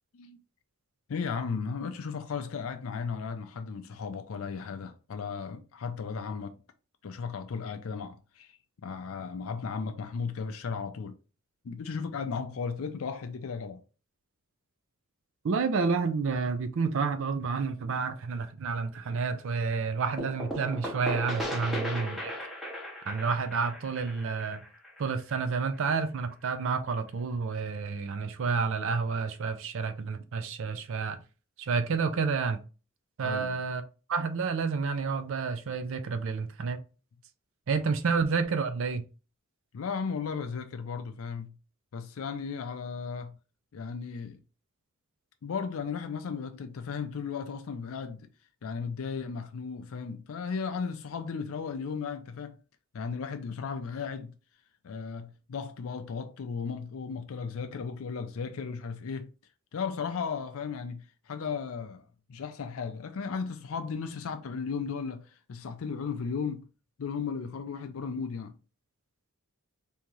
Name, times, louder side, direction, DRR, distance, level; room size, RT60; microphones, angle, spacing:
voice 1, 1.1-6.5 7.0-11.2 11.6-13.8 21.6-21.7 33.2-33.6 37.7-37.8 39.7-41.5 41.9-43.4 43.7-44.4 45.4-48.3 48.6-52.6 52.9-54.3 54.8-59.3 59.7-62.0 62.3-66.6 67.0-68.6, left 5 dB, 70° left, 0.4 m, -35 dB
voice 2, 15.4-22.3 23.1-24.6 25.0-31.2 31.6-32.6 33.2-33.8 34.1-36.8 37.7-39.0, right 5 dB, 60° right, 0.4 m, -30 dB
sound 1, 20.2-25.8, equal, ahead, 0.8 m, -37 dB
3.6 x 2.8 x 3.0 m
head